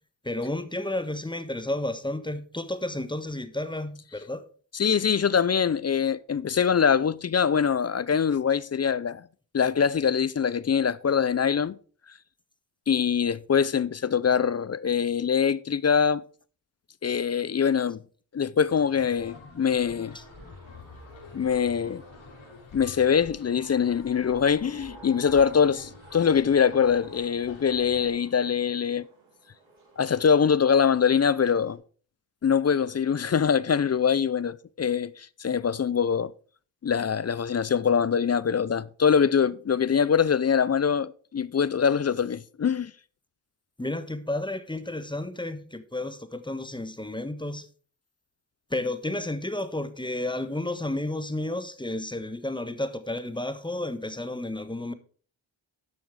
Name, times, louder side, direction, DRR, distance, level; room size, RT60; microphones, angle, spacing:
voice 1, 0.2-4.4 20.1-20.2 43.8-47.7 48.7-54.9, left 1 dB, 10° left, 1.2 m, -32 dB
voice 2, 4.7-9.2 9.5-11.8 12.9-16.2 17.0-18.0 18.3-20.2 21.3-22.0 22.7-29.0 30.0-31.8 32.4-36.3 36.8-42.9, left 7 dB, 35° left, 0.5 m, -23 dB
sound 1, 18.7-28.1, left 3 dB, 70° left, 3.7 m, -47 dB
sound 2, 20.0-31.8, right 3 dB, 85° right, 4.9 m, -53 dB
10.5 x 6.3 x 4.7 m
cardioid pair, 60°, 47 cm